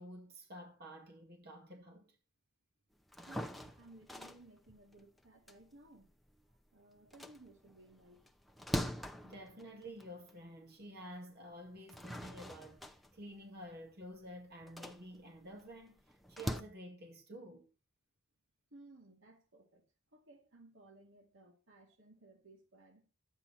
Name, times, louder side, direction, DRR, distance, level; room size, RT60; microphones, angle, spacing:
voice 1, 0.0-2.1 9.2-17.7, equal, 55° right, 2.2 m, -50 dB
sound 1, 3.0-6.6 7.0-10.5 10.9-11.0 11.7-16.6, equal, ahead, 0.7 m, -44 dB
voice 2, 3.1-6.1 6.7-8.2 18.7-19.9 20.1-23.0, right 2 dB, 75° right, 2.5 m, -59 dB
11.5 x 9.0 x 4.2 m
head